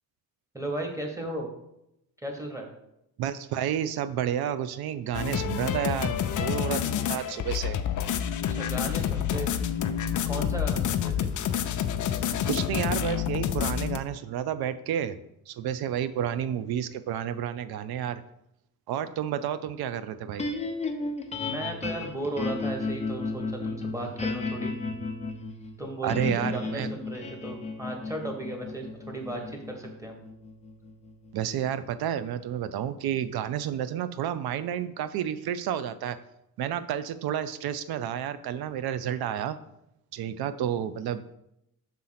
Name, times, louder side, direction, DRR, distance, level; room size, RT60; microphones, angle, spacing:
voice 1, 0.5-1.5 2.2-2.7 8.5-9.7 10.2-11.3 21.4-24.7 25.8-30.2, right 1 dB, 10° right, 2 dB, 1.5 m, -35 dB
voice 2, 3.2-7.8 12.5-15.2 15.5-18.2 18.9-20.5 26.0-26.9 31.3-36.2 36.6-39.6 40.1-41.3, right 9 dB, 85° right, 12 dB, 0.6 m, -30 dB
sound 1, 5.1-14.0, left 9 dB, 55° left, 0.5 m, -28 dB
sound 2, 20.4-32.7, left 3 dB, 20° left, 0.7 m, -34 dB
5.8 x 3.8 x 5.7 m, 0.83 s
cardioid pair, 100°, 36 cm